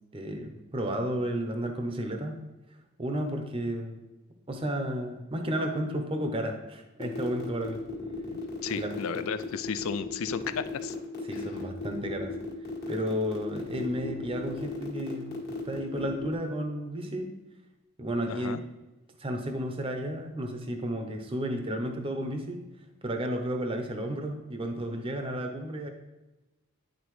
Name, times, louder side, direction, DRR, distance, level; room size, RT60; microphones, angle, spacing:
voice 1, 0.1-2.4 3.0-4.0 4.5-7.8 8.8-8.9 11.3-12.3 12.9-15.4 15.6-17.3 18.0-18.6 19.2-22.6 23.0-25.9, equal, 25° right, 4 dB, 0.7 m, -32 dB
sound 1, 7.0-16.3, left 3 dB, 45° left, 1.6 m, -37 dB
voice 2, 8.6-11.0 11.3-11.4 18.3-18.6, left 6 dB, 70° left, 12 dB, 0.4 m, -34 dB
10.5 x 4.0 x 3.2 m, 1.1 s
head